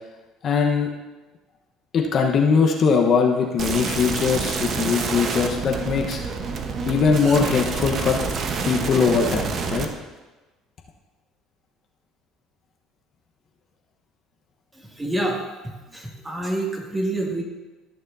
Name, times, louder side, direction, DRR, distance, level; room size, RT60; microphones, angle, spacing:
voice 1, 0.4-0.9 1.9-6.2 6.9-8.2 8.6-9.9, left 5 dB, 50° left, 1 dB, 1.1 m, -21 dB
sound 1, 3.6-9.8, right 5 dB, 50° right, 1.1 m, -27 dB
voice 2, 14.9-15.4 15.9-17.4, right 1 dB, 15° right, -1 dB, 2.3 m, -27 dB
14.5 x 6.7 x 2.7 m, 1.2 s
hypercardioid pair, 70°, 0 cm